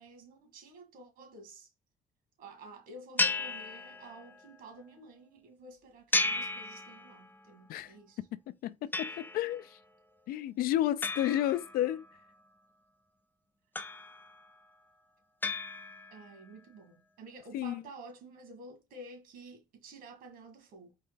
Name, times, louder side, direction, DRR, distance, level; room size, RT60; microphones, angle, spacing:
voice 1, 0.0-1.7 2.4-8.2 11.3-11.5 16.1-20.9, right 2 dB, 70° right, 1.9 m, -51 dB
sound 1, 3.2-4.4 6.1-7.4 8.9-9.6 11.0-12.2 13.8-14.5 15.4-16.3, left 3 dB, 10° left, 0.6 m, -34 dB
voice 2, 8.3-9.8 10.3-12.1 17.5-17.8, left 12 dB, 80° left, 0.4 m, -31 dB
4.5 x 3.1 x 3.9 m
cardioid pair, 105°, 15 cm